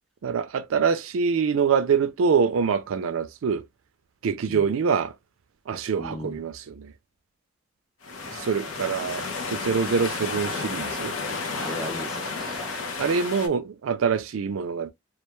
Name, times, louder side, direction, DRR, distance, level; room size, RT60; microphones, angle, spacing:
voice 1, 0.2-3.6 4.2-5.1 5.7-6.9 8.3-11.1 13.0-14.9, right 6 dB, 75° right, 0.4 m, -25 dB
voice 2, 6.0-6.4 8.2-8.4 11.5-12.8, equal, ahead, 0.4 m, -38 dB
sound 1, 8.0-13.5, left 4 dB, 80° left, 0.7 m, -32 dB
2.4 x 2.2 x 2.9 m
head